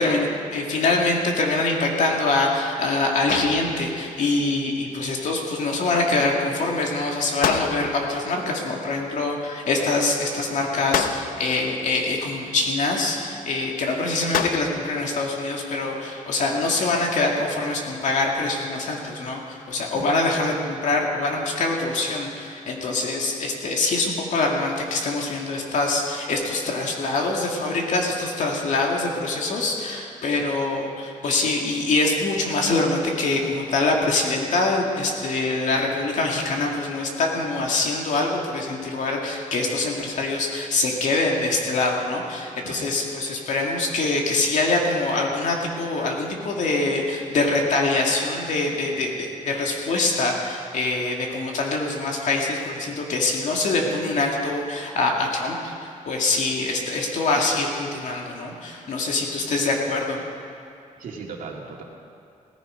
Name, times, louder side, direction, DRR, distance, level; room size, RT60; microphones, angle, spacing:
voice 1, 0.0-55.7 56.1-60.2, left 3 dB, 65° left, 0 dB, 2.3 m, -24 dB
sound 1, 3.3-4.2 7.4-8.2 10.9-11.7 14.3-15.0, left 8 dB, 85° left, 0.7 m, -28 dB
voice 2, 61.0-61.8, right 4 dB, 75° right, 0 dB, 2.2 m, -37 dB
17.0 x 15.0 x 5.1 m, 2.7 s
wide cardioid pair, 175°, 14 cm